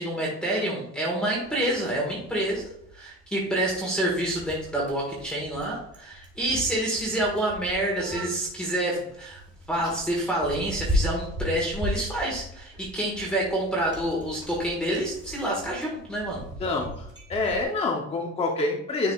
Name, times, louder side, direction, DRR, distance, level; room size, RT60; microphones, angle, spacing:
voice 1, 0.0-9.4 9.7-16.4, right 1 dB, 5° left, -5 dB, 1.5 m, -28 dB
Bicycle, 1.3-17.6, equal, 15° right, 2.0 m, -36 dB
voice 2, 16.6-17.0 17.3-19.1, left 3 dB, 20° left, 1 dB, 0.7 m, -27 dB
10.0 x 4.7 x 2.4 m, 0.72 s
cardioid pair, 170°, 31 cm